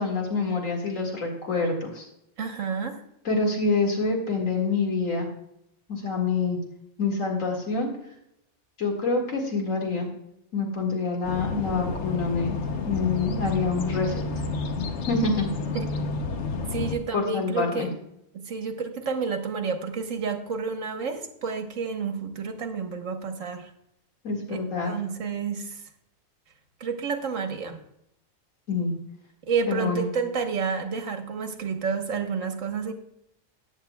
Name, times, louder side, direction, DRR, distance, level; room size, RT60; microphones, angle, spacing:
voice 1, 0.0-2.1 3.2-5.3 5.9-6.6 7.0-7.9 8.8-10.1 10.5-12.6 12.9-14.3 15.1-15.5 17.1-17.9 24.2-24.9 28.7-28.9 29.7-30.0, left 4 dB, 85° left, 1 dB, 2.4 m, -26 dB
voice 2, 2.4-3.0 15.7-15.9 16.7-17.9 18.3-23.7 24.5-25.8 26.8-27.8 29.4-32.9, right 5 dB, 75° right, 6 dB, 1.5 m, -30 dB
sound 1, 11.2-17.0, left 3 dB, 65° left, 1.2 m, -30 dB
14.0 x 9.9 x 2.3 m, 0.79 s
omnidirectional pair, 1.3 m